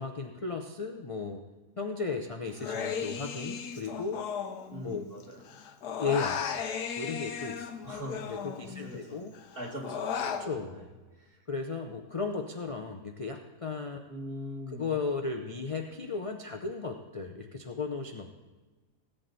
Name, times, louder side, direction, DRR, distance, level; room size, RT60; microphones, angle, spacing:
voice 1, 0.0-1.4 1.8-4.2 4.8-5.0 6.0-6.4 6.9-7.7 8.3-9.3 10.4-10.9 11.5-14.0 14.7-18.3, left 4 dB, 50° left, 3 dB, 0.4 m, -35 dB
Human voice, 2.6-5.2 5.5-9.0 9.3-10.4, left 7 dB, 80° left, 1.4 m, -36 dB
voice 2, 4.7-5.6 7.8-8.3 8.8-9.3 9.5-11.5 12.6-12.9 14.1-14.9, equal, 35° right, -1 dB, 2.3 m, -42 dB
18.0 x 8.1 x 4.1 m, 1.3 s
omnidirectional pair, 1.7 m